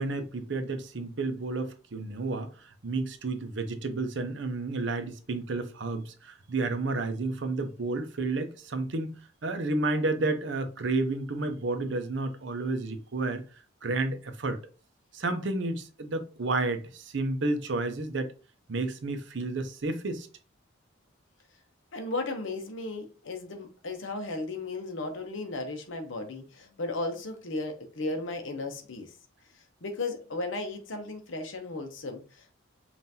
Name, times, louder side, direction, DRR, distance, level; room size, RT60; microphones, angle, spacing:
voice 1, 0.0-9.2 9.4-13.4 13.8-14.6 15.1-18.3 18.7-20.3, right 2 dB, 60° right, 0.6 m, -31 dB
voice 2, 21.9-29.1 29.8-32.5, left 2 dB, 70° left, 0.8 m, -35 dB
5.5 x 2.5 x 2.7 m
head